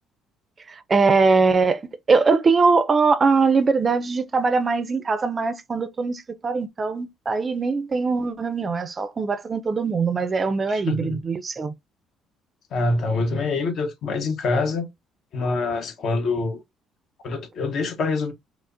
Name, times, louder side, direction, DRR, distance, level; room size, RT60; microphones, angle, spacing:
voice 1, 0.7-1.8 2.1-11.7, right 4 dB, 35° right, 0.4 m, -21 dB
voice 2, 10.7-11.2 12.7-14.9 15.3-16.6 17.2-18.3, left 3 dB, 60° left, 0.9 m, -25 dB
4.8 x 2.0 x 2.5 m
supercardioid pair, 85°, 0 cm